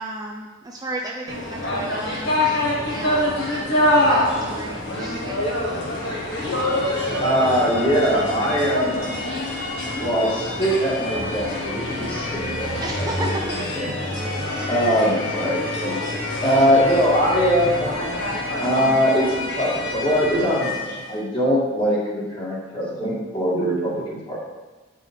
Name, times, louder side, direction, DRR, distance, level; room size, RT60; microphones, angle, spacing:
voice 1, 0.0-5.9 12.8-13.4, right 1 dB, 20° right, 0 dB, 0.5 m, -34 dB
sound 1, 1.3-21.1, left 1 dB, 60° left, 1.7 m, -26 dB
voice 2, 7.2-9.1 10.0-13.3 13.8-14.2 14.7-16.0 16.4-18.3 18.6-24.4, equal, 25° left, -5 dB, 2.0 m, -22 dB
9.2 x 5.3 x 3.7 m, 1.2 s
head